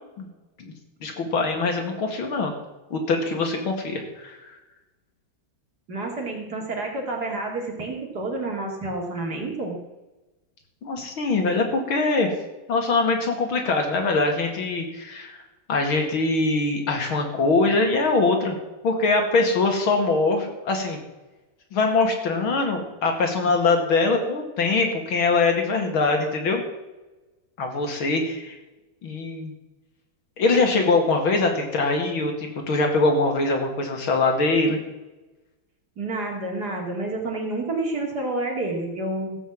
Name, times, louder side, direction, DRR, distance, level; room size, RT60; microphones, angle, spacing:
voice 1, 1.0-2.5 2.9-4.5 10.8-12.3 12.7-15.4 15.7-18.6 18.8-21.0 21.7-26.6 27.6-28.6 29.0-29.5 30.4-34.8, left 3 dB, 80° left, 3 dB, 2.9 m, -23 dB
voice 2, 5.9-9.8 36.0-39.4, right 2 dB, 50° right, 0 dB, 2.9 m, -29 dB
15.0 x 8.0 x 7.3 m, 1.1 s
omnidirectional pair, 2.2 m